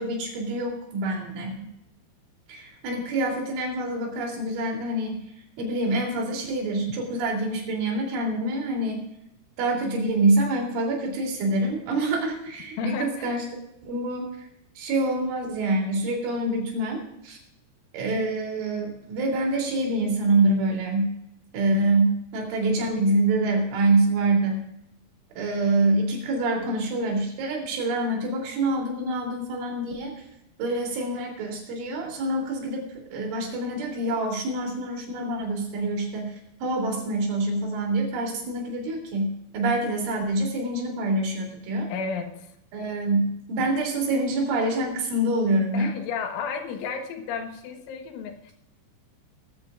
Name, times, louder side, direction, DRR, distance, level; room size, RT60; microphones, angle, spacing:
voice 1, 0.0-1.7 2.5-5.2 5.6-9.0 9.6-13.5 13.8-14.5 14.8-17.4 17.9-21.1 21.5-24.6 25.4-30.2 30.6-32.9 33.1-41.9 42.7-45.9, right 2 dB, 70° right, 1 dB, 5.6 m, -26 dB
voice 2, 12.8-13.4 41.9-42.5 45.7-48.5, left 6 dB, 75° left, 5 dB, 3.7 m, -33 dB
20.5 x 14.0 x 2.5 m, 0.79 s
omnidirectional pair, 5.7 m